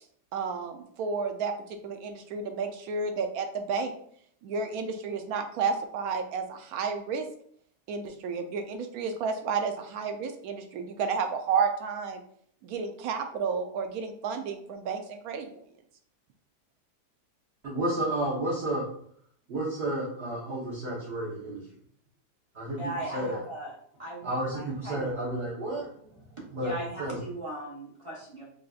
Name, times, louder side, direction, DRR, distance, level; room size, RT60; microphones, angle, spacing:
voice 1, 0.3-1.5 1.8-3.9 4.4-7.3 7.9-12.2 12.6-15.6, right 5 dB, 70° right, 6 dB, 1.0 m, -31 dB
voice 2, 17.6-18.8 19.5-21.6 22.5-22.8 23.1-23.4 24.2-25.9 26.5-26.7 27.0-27.2, right 1 dB, 45° right, -7 dB, 1.1 m, -31 dB
voice 3, 22.8-23.7 24.0-25.1 26.4-28.4, right 1 dB, 20° right, -5 dB, 0.9 m, -38 dB
5.1 x 2.7 x 2.4 m, 0.64 s
omnidirectional pair, 1.8 m